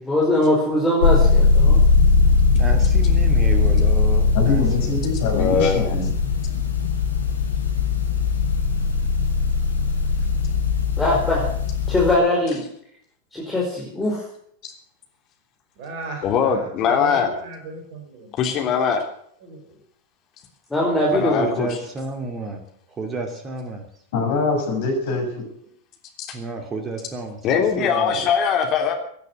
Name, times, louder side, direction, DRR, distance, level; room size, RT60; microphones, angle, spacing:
voice 1, 0.0-1.9 11.0-11.4 11.9-12.6 13.3-14.2 20.7-21.4, left 1 dB, 10° left, -4 dB, 4.9 m, -21 dB
sound 1, 1.0-12.1, left 4 dB, 75° left, 3.1 m, -19 dB
voice 2, 2.5-5.0 21.2-22.6 23.0-23.9 26.3-28.3, right 3 dB, 20° right, 4 dB, 2.6 m, -31 dB
voice 3, 4.3-6.1 24.1-25.3, left 4 dB, 55° left, 2 dB, 6.7 m, -23 dB
voice 4, 5.3-5.9 16.2-17.3 18.4-19.0 21.1-21.7 26.2-26.4 27.4-28.9, left 7 dB, 35° left, 3 dB, 3.2 m, -21 dB
voice 5, 15.8-18.7 19.4-19.8, right 3 dB, 45° right, 4 dB, 4.4 m, -37 dB
17.0 x 10.5 x 8.0 m, 0.66 s
figure-of-eight pair, 90°, 0 cm